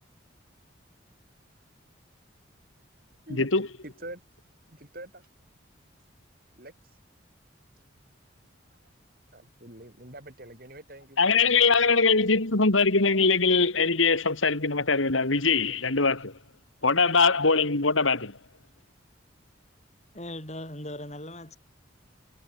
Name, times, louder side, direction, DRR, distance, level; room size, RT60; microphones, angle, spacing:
voice 1, 3.8-4.2 4.7-5.3 6.6-7.0 9.3-12.0, right 1 dB, 50° right, 6.5 m, -45 dB
voice 2, 11.2-16.3 16.8-18.4, left 4 dB, 90° left, 2.7 m, -22 dB
voice 3, 20.1-21.6, left 1 dB, 35° left, 7.3 m, -38 dB
head